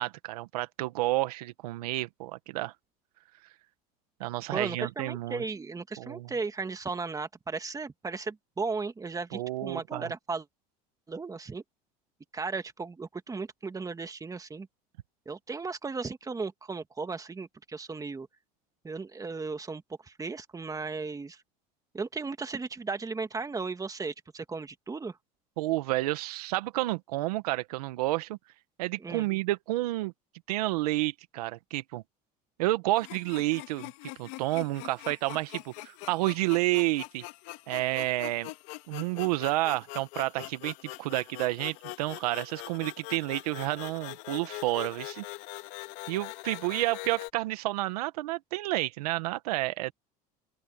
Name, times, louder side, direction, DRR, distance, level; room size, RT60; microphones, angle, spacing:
voice 1, 0.0-2.7 4.2-5.4 6.0-6.3 9.3-10.1 25.6-28.4 28.8-30.1 30.5-32.0 32.6-33.9 34.2-37.2 37.7-38.5 38.9-45.2 46.1-49.9, right 18 dB, 90° right, 1.5 m, -30 dB
voice 2, 4.5-10.5 11.1-11.6 12.3-14.7 15.3-18.3 18.8-21.4 21.9-25.2 29.0-29.3, right 4 dB, 20° right, 1.9 m, -36 dB
sound 1, 33.0-47.3, left 22 dB, 75° left, 2.8 m, -43 dB
open air
supercardioid pair, 100°, 19 cm